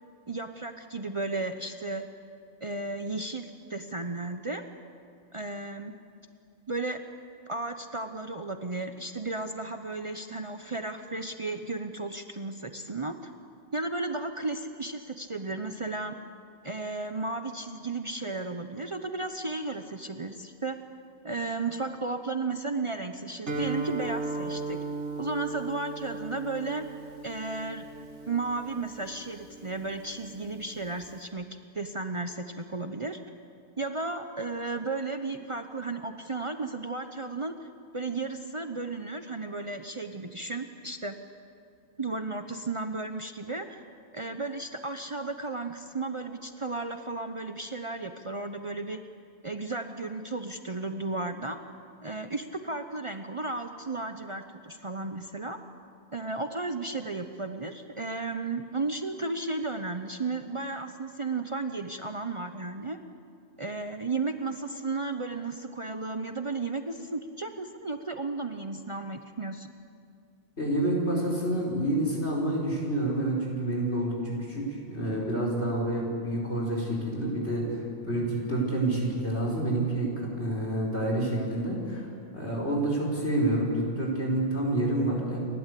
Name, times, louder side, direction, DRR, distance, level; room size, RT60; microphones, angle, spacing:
voice 1, 0.3-2.1 2.6-4.6 5.3-6.0 6.7-7.0 7.5-13.3 13.7-16.2 16.6-20.8 21.2-24.8 25.2-26.9 27.2-27.9 28.3-31.5 31.7-33.2 33.8-37.7 37.9-41.2 42.0-43.8 44.1-49.0 49.4-51.6 52.0-55.6 56.1-63.0 63.6-69.7, right 3 dB, 30° right, 7 dB, 0.8 m, -34 dB
Guitar, 23.5-31.2, right 3 dB, 85° right, 2.0 m, -37 dB
voice 2, 70.6-82.1 82.3-85.4, right 1 dB, 75° left, -3 dB, 5.3 m, -28 dB
29.0 x 12.0 x 8.3 m, 2.3 s
omnidirectional pair, 1.1 m